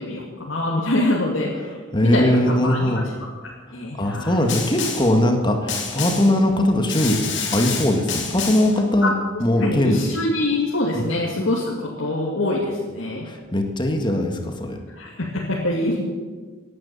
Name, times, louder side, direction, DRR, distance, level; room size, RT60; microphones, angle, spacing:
voice 1, 0.0-1.7 2.0-3.0 3.7-4.4 9.0-9.1 9.6-13.3 14.9-16.0, left 1 dB, 80° left, -5 dB, 2.6 m, -24 dB
voice 2, 1.9-3.1 4.0-7.2 7.5-9.1 9.4-10.0 10.9-11.0 13.3-14.8, left 1 dB, 25° left, 4 dB, 1.8 m, -20 dB
Snare drum, 4.5-5.2 5.7-6.4 6.9-8.8, left 5 dB, 65° left, 3.0 m, -28 dB
17.0 x 11.0 x 7.0 m, 1.4 s
head